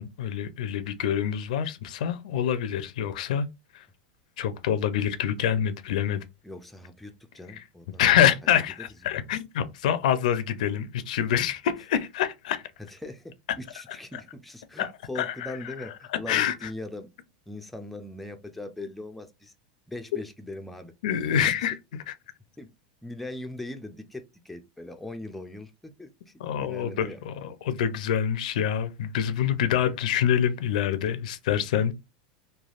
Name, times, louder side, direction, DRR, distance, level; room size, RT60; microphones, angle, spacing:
voice 1, 0.0-3.5 3.7-3.8 4.4-6.2 8.0-12.6 14.8-14.9 15.2-15.5 16.3-16.7 21.0-21.7 22.1-22.2 26.4-31.9, left 9 dB, 75° left, 0.4 m, -26 dB
voice 2, 6.4-8.0 8.4-8.9 12.9-17.1 17.5-19.5 19.9-20.9 21.3-21.5 22.6-22.7 23.0-27.2, left 2 dB, ahead, 0.3 m, -40 dB
3.2 x 2.2 x 2.4 m
supercardioid pair, 150°, 4 cm